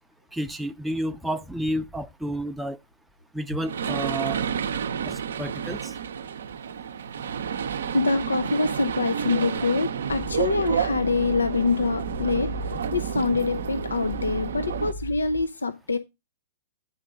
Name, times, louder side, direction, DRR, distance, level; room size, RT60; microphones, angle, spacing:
voice 1, 0.3-2.8 3.3-4.4 5.0-5.8, right 1 dB, 5° right, 0.5 m, -30 dB
sound 1, 3.6-14.9, right 7 dB, 70° right, 0.6 m, -30 dB
voice 2, 7.9-12.5 12.9-16.0, left 3 dB, 85° left, 0.5 m, -25 dB
sound 2, 10.1-15.4, left 1 dB, 35° left, 1.0 m, -37 dB
9.3 x 3.7 x 4.9 m
hypercardioid pair, 115°, 0 cm